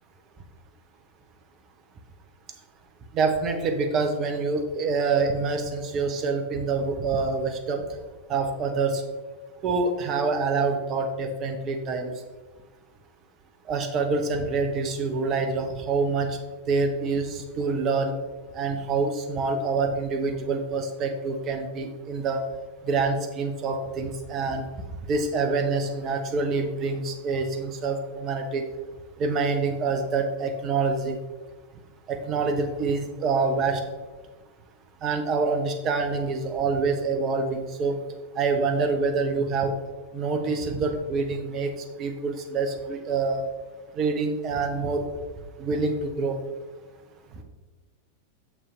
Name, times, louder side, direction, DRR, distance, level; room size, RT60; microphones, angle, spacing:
voice 1, 3.1-7.9 8.3-9.0 9.6-12.1 13.7-16.4 16.7-18.1 18.5-22.4 22.8-24.7 25.1-28.6 29.2-31.2 32.1-33.8 35.0-38.0 38.4-39.7 40.1-41.7 42.0-43.4 43.9-45.0 45.6-46.4, right 4 dB, 35° right, 6 dB, 0.9 m, -26 dB
6.7 x 6.1 x 3.2 m, 1.3 s
figure-of-eight pair, 90°, 0 cm